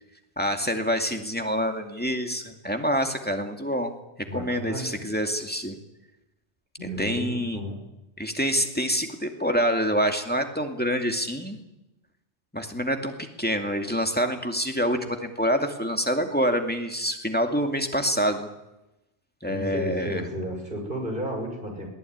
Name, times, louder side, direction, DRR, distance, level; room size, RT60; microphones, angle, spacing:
voice 1, 0.4-3.9 4.3-5.8 7.0-7.6 8.2-11.6 12.5-18.5 19.4-20.2, equal, 10° left, 4 dB, 2.3 m, -26 dB
voice 2, 4.3-5.0 6.8-7.8 19.5-21.9, equal, 50° right, 2 dB, 6.7 m, -33 dB
22.5 x 17.5 x 9.5 m, 0.94 s
omnidirectional pair, 1.2 m